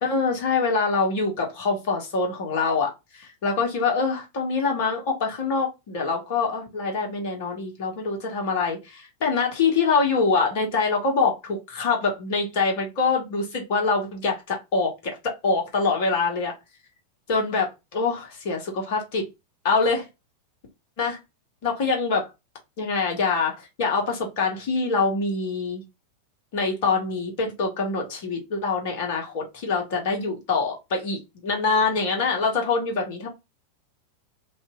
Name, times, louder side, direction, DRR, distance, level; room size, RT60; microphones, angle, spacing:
voice 1, 0.0-16.5 17.3-17.7 17.9-19.2 19.6-20.1 21.0-21.2 21.6-22.3 22.8-25.8 26.5-33.3, left 4 dB, 50° left, 1.0 m, -25 dB
2.8 x 2.4 x 2.3 m
figure-of-eight pair, 90°, 0 cm